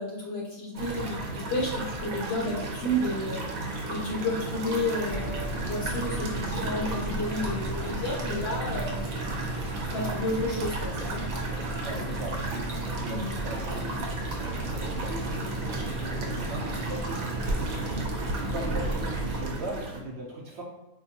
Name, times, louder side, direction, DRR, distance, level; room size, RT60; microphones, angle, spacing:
voice 1, 0.0-3.5 3.9-9.1 9.9-11.3 13.0-13.3, left 1 dB, 55° left, -2 dB, 0.8 m, -31 dB
sound 1, 0.7-20.0, right 2 dB, 80° right, 1.1 m, -34 dB
sound 2, 5.1-19.4, right 1 dB, 25° left, 0.5 m, -35 dB
voice 2, 11.8-14.1 14.4-17.2 17.6-18.1 18.4-20.6, right 2 dB, 65° right, -2 dB, 0.7 m, -39 dB
4.5 x 2.2 x 2.7 m, 1.0 s
omnidirectional pair, 1.5 m